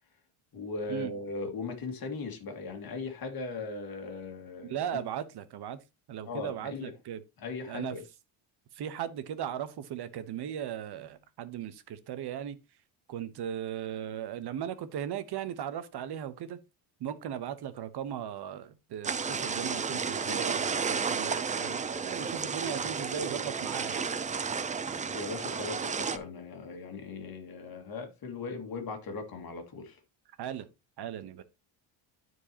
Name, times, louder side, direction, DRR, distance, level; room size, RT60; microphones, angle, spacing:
voice 1, 0.5-5.0 6.2-6.9 7.4-8.0 25.1-30.0, left 3 dB, 45° left, 2.1 m, -38 dB
voice 2, 4.6-5.8 6.1-7.2 7.6-8.0 8.7-12.6 13.1-16.6 17.0-24.0 30.4-30.7 31.0-31.4, right 9 dB, 55° right, 1.1 m, -37 dB
sound 1, 19.0-26.2, right 5 dB, 15° right, 0.4 m, -32 dB
12.5 x 4.7 x 2.9 m
cardioid pair, 125°, 49 cm